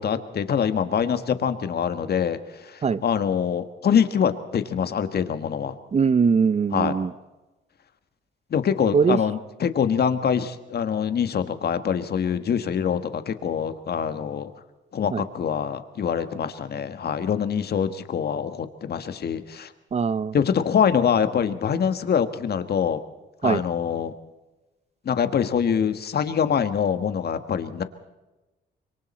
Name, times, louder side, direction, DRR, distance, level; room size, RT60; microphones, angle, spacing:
voice 1, 0.0-5.7 6.7-7.0 8.5-14.5 14.9-19.7 20.3-23.0 23.4-24.1 25.0-27.8, left 7 dB, 55° left, 10 dB, 1.6 m, -24 dB
voice 2, 5.9-7.1 8.9-9.2 15.1-15.2 19.9-20.3 23.4-23.6, right 5 dB, 35° right, 17 dB, 0.8 m, -21 dB
26.0 x 23.0 x 4.3 m, 1.1 s
cardioid pair, 90°, 20 cm